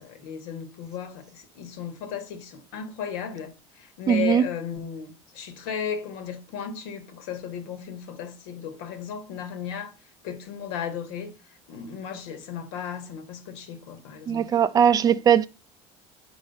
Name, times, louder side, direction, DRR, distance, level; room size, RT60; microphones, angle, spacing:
voice 1, 0.0-9.9 10.2-11.3 11.7-14.6, left 8 dB, 85° left, 1.6 m, -35 dB
voice 2, 4.1-4.4 14.3-15.5, right 8 dB, 30° right, 0.4 m, -19 dB
5.5 x 4.9 x 5.3 m
cardioid pair, 130°, 13 cm